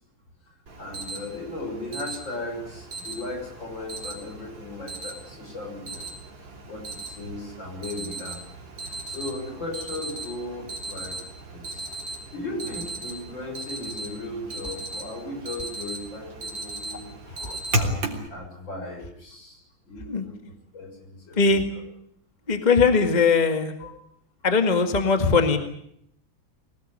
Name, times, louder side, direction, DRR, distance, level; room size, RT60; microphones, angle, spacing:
Alarm, 0.7-18.3, right 2 dB, 70° right, 3.9 m, -36 dB
voice 1, 0.8-6.0 6.7-8.4 9.0-11.2 11.5-11.9 12.3-17.1 17.7-19.6 19.9-21.6 23.8-23.9, left 2 dB, 65° left, 2 dB, 7.3 m, -36 dB
voice 2, 22.5-23.7 24.4-25.6, left 4 dB, 20° left, 7 dB, 1.9 m, -20 dB
23.0 x 19.0 x 9.8 m, 0.72 s
omnidirectional pair, 2.2 m